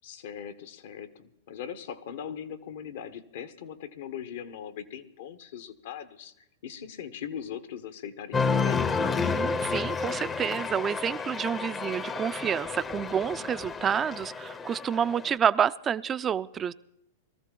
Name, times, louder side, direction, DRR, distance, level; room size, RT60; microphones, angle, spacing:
voice 1, 0.0-8.8, left 8 dB, 70° left, 12 dB, 1.0 m, -40 dB
Cheering, 8.3-15.4, left 5 dB, 20° left, 0.7 m, -30 dB
voice 2, 9.2-16.7, right 8 dB, 25° right, 17 dB, 0.4 m, -29 dB
20.0 x 14.0 x 3.8 m, 0.82 s
hypercardioid pair, 110°, 0 cm